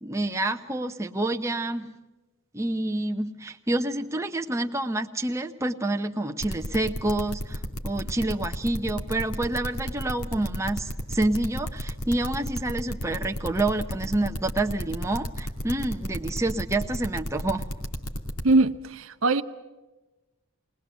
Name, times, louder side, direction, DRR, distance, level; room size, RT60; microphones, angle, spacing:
voice 1, 0.0-1.9 2.5-17.6, right 2 dB, 15° right, 5 dB, 0.7 m, -28 dB
sound 1, 6.4-18.5, equal, 90° left, 2.6 m, -32 dB
voice 2, 18.4-19.4, right 2 dB, 70° right, 8 dB, 0.8 m, -21 dB
20.5 x 20.0 x 8.0 m, 1.1 s
head